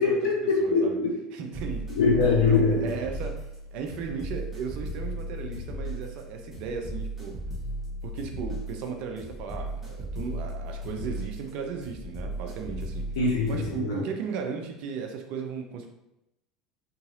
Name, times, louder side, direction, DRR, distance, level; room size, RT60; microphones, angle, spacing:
voice 1, 0.0-1.2 1.9-2.9 13.2-14.0, left 4 dB, 70° left, -2 dB, 0.5 m, -23 dB
voice 2, 0.6-1.0 1.3-2.0 2.5-7.4 8.0-13.1 13.5-15.9, right 6 dB, 60° right, 4 dB, 0.5 m, -36 dB
sound 1, 1.5-13.7, equal, 10° right, 1.2 m, -36 dB
2.8 x 2.6 x 2.6 m, 0.90 s
hypercardioid pair, 75°, 2 cm